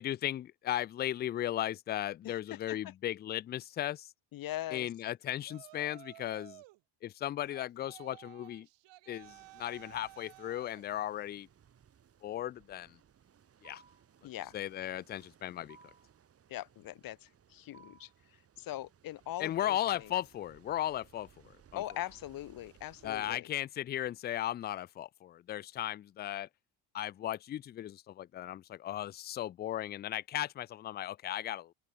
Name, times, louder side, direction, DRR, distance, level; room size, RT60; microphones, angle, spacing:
voice 1, 0.0-4.1 4.7-6.6 7.0-8.7 9.1-11.5 12.2-13.0 13.6-13.8 14.5-15.8 19.4-21.3 21.7-21.8 23.0-26.5 26.9-31.7, left 12 dB, 25° left, 0.3 m, -36 dB
voice 2, 2.2-2.8 4.3-4.9 14.2-14.5 16.5-18.1 18.6-20.1 21.7-23.5, left 14 dB, 45° left, 1.5 m, -41 dB
Yell, 5.4-6.8 7.5-10.9, right 20 dB, 60° right, 2.1 m, -54 dB
sound 1, 9.2-23.4, right 8 dB, 30° right, 4.2 m, -64 dB
sound 2, 13.6-14.1 15.7-16.2 17.7-18.2 19.8-20.3 21.8-22.3, right 4 dB, 15° right, 1.7 m, -58 dB
open air
cardioid pair, 175°, 49 cm